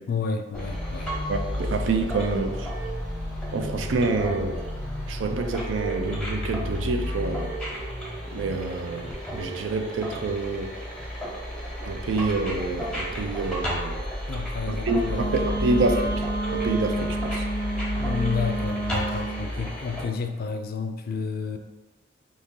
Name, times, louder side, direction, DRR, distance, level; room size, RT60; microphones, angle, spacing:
voice 1, 0.1-1.1 14.3-15.5 18.0-21.6, left 5 dB, 55° left, 7 dB, 0.3 m, -30 dB
sound 1, 0.5-20.0, equal, 5° left, 0.8 m, -32 dB
voice 2, 1.3-2.7 3.5-4.6 5.1-7.6 8.3-10.7 11.9-14.0 14.7-17.5, right 3 dB, 80° right, 6 dB, 0.4 m, -27 dB
Wind instrument woodwind instrument, 15.0-19.4, right 2 dB, 65° right, 0.9 m, -30 dB
2.9 x 2.7 x 3.6 m, 1.1 s
head